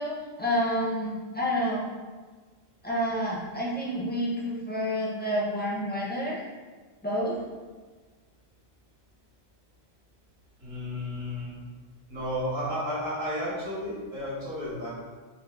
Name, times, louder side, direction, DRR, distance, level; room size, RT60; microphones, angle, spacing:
voice 1, 0.0-1.8 2.8-6.4 7.0-7.4, equal, 15° left, -5 dB, 0.4 m, -29 dB
voice 2, 10.6-11.6 12.1-14.9, equal, 75° right, -8 dB, 1.5 m, -32 dB
3.4 x 2.1 x 3.4 m, 1.4 s
omnidirectional pair, 1.0 m